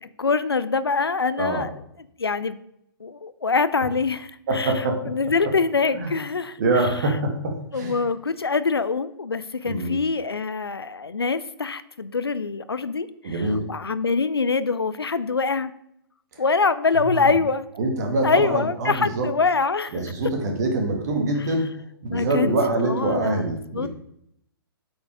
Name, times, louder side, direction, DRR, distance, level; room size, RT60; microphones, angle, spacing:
voice 1, 0.0-1.7 2.2-2.6 3.0-4.7 5.0-6.9 7.7-15.7 16.4-17.6 18.2-20.0 22.1-23.5 23.7-23.9, left 4 dB, 75° left, 14 dB, 0.5 m, -24 dB
voice 2, 4.5-5.1 5.4-5.5 5.9-6.1 6.6-8.0 9.7-10.0 13.2-13.6 16.3-16.4 17.0-17.4 17.8-19.3 19.9-21.7 22.0-23.9, right 2 dB, 45° right, 3 dB, 1.9 m, -25 dB
8.0 x 5.1 x 4.8 m, 0.75 s
figure-of-eight pair, 120°, 13 cm